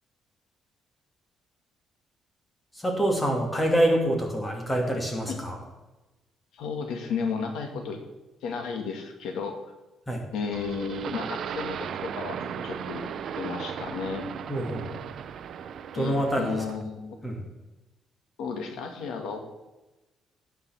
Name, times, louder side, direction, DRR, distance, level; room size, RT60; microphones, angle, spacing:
voice 1, 2.8-5.6 10.1-10.2 14.5-14.8 15.9-16.6 17.2-17.4, right 1 dB, 10° left, 1 dB, 2.3 m, -26 dB
voice 2, 6.5-8.0 8.4-9.6 10.3-13.0 13.4-14.3 15.9-17.2 18.4-19.4, left 5 dB, 85° left, 4 dB, 2.2 m, -33 dB
sound 1, 10.5-16.8, right 8 dB, 50° right, 0.7 m, -36 dB
17.0 x 5.8 x 7.2 m, 1.1 s
cardioid pair, 170°, 0 cm